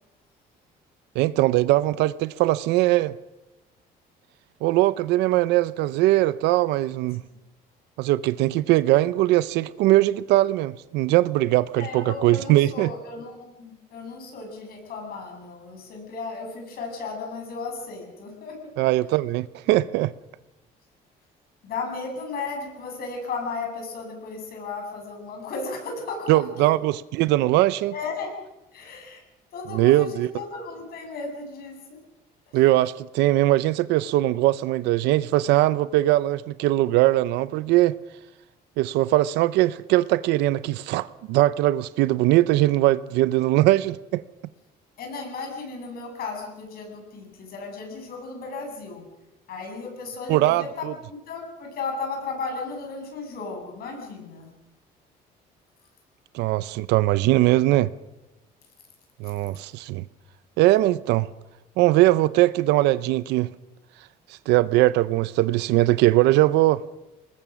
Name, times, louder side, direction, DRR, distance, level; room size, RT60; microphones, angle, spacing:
voice 1, 1.2-3.1 4.6-7.2 8.0-12.9 18.8-20.1 26.3-27.9 29.7-30.3 32.5-38.0 38.8-44.2 50.3-50.9 56.3-57.9 59.2-60.0 60.6-61.3 61.8-63.5 64.5-66.8, right 16 dB, 90° right, 0.7 m, -21 dB
voice 2, 11.8-18.6 21.6-26.7 27.9-28.3 28.7-29.2 29.5-32.0 45.0-49.1 49.5-54.5, left 4 dB, 65° left, 7.9 m, -35 dB
25.5 x 20.5 x 6.3 m
cardioid pair, 110°, 17 cm